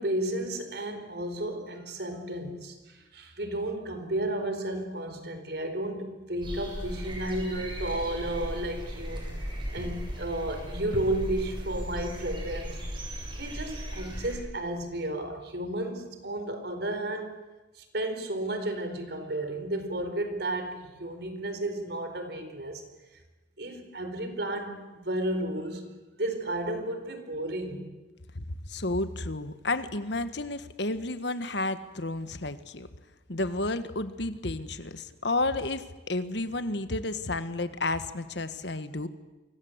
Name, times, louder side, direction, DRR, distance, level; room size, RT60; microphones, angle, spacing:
voice 1, 0.0-9.3 9.7-12.8 13.3-17.4 17.7-22.8 23.6-25.9 26.2-28.0, right 1 dB, 60° right, 8 dB, 4.4 m, -33 dB
sound 1, 6.4-14.4, equal, 25° right, 7.5 m, -37 dB
voice 2, 28.3-32.9 33.3-39.1, left 2 dB, 65° left, 11 dB, 1.6 m, -31 dB
30.0 x 24.5 x 8.1 m, 1.2 s
head